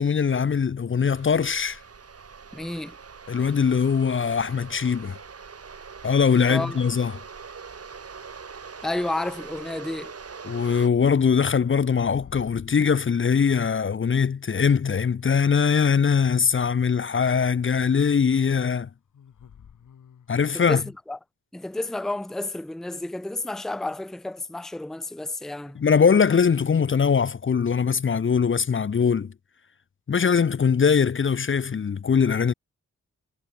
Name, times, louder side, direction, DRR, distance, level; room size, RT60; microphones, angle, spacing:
voice 1, 0.0-1.8 3.3-5.2 6.0-7.1 10.4-18.9 20.3-20.8 25.8-29.3 30.1-32.5, left 6 dB, 40° left, 0.7 m, -21 dB
sound 1, 1.0-10.9, right 5 dB, 50° right, 2.5 m, -42 dB
voice 2, 2.5-3.0 6.5-6.8 8.8-10.1 20.5-21.2 21.5-25.8, left 2 dB, ahead, 0.7 m, -31 dB
sound 2, 10.6-10.8 11.6-12.8 14.0-14.1 15.2-17.0 19.1-20.6, left 8 dB, 75° left, 3.7 m, -50 dB
cardioid pair, 60°, 31 cm